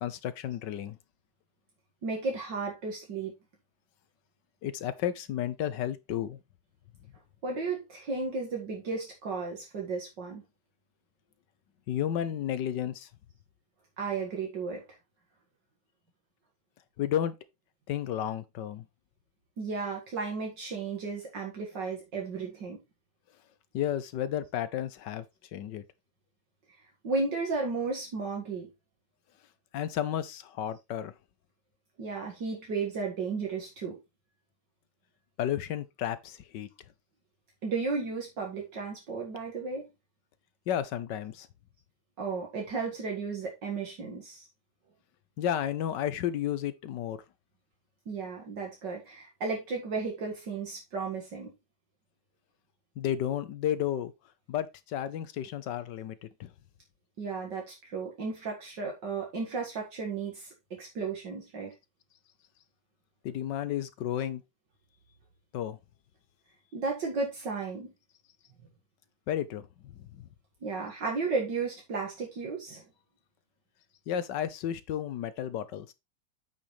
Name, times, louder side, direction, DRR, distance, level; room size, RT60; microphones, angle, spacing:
voice 1, 0.0-1.0 4.6-6.4 11.9-13.1 17.0-17.3 17.9-18.8 23.7-25.2 25.5-25.8 29.7-31.1 35.4-36.7 40.7-41.5 45.4-47.2 53.0-54.1 54.5-56.5 63.2-64.4 65.5-65.8 69.3-70.2 74.1-75.9, left 10 dB, 70° left, 1.5 m, -32 dB
voice 2, 2.0-3.3 7.4-10.4 14.0-14.8 19.6-22.8 27.0-28.7 32.0-34.0 37.6-39.9 42.2-44.5 48.1-51.5 57.2-61.7 66.7-67.9 70.6-72.8, right 4 dB, 65° right, 2.5 m, -34 dB
8.8 x 6.7 x 3.2 m
omnidirectional pair, 2.1 m